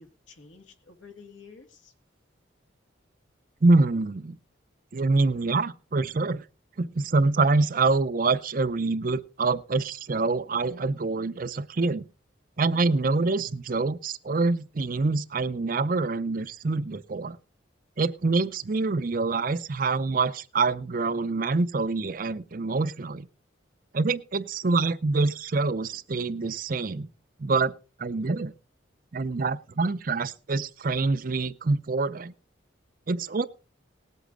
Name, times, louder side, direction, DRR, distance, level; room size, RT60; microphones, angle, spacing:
voice 1, 0.0-1.9 25.9-26.0, left 5 dB, 75° left, 5 dB, 2.0 m, -50 dB
voice 2, 3.6-4.4 4.9-6.4 6.8-12.1 12.6-17.4 18.0-23.3 23.9-27.1 27.4-27.7 28.0-28.5 29.1-32.3 33.1-33.5, right 3 dB, 45° right, 16 dB, 0.5 m, -25 dB
19.0 x 8.2 x 3.8 m, 0.35 s
head